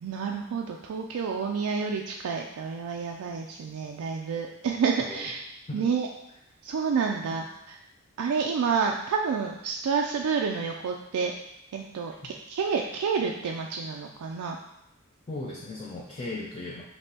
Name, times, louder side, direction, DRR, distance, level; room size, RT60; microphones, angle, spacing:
voice 1, 0.0-5.4 5.7-6.1 6.6-7.8 8.2-11.3 11.7-14.6, right 5 dB, 80° right, 1 dB, 0.4 m, -29 dB
voice 2, 5.0-5.3 5.7-5.9 7.3-7.4 15.3-16.8, left 2 dB, 25° left, -3 dB, 0.4 m, -37 dB
5.3 x 2.9 x 2.8 m, 0.83 s
head